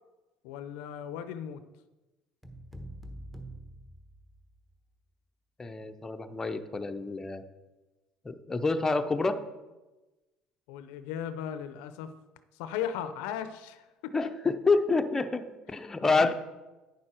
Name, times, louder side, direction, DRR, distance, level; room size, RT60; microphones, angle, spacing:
voice 1, 0.4-1.6 10.7-12.1 12.5-14.1 16.0-16.3, left 9 dB, 85° left, 11 dB, 0.6 m, -37 dB
sound 1, 2.4-4.7, right 1 dB, ahead, 1.1 m, -45 dB
voice 2, 5.6-7.4 8.2-9.4 14.1-16.3, left 3 dB, 20° left, 7 dB, 0.6 m, -28 dB
9.4 x 6.6 x 4.4 m, 1.1 s
supercardioid pair, 100°, 2 cm